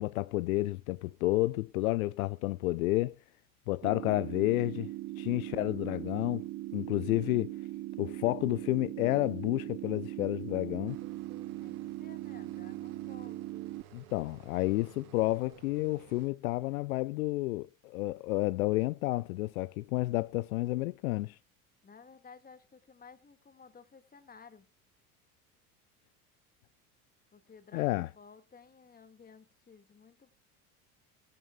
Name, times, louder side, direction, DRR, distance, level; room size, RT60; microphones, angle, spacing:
voice 1, 0.0-3.2 3.7-4.9 5.2-6.5 6.7-7.5 8.0-11.0 13.9-21.4 27.7-28.1, left 19 dB, 70° left, 0.5 m, -30 dB
sound 1, 3.8-13.8, right 16 dB, 35° right, 0.7 m, -40 dB
sound 2, 10.9-16.3, right 10 dB, 70° right, 1.4 m, -55 dB
voice 2, 11.6-13.4 21.8-24.7 27.3-30.3, left 5 dB, 20° left, 1.8 m, -55 dB
19.0 x 11.0 x 2.3 m
hypercardioid pair, 75°, 44 cm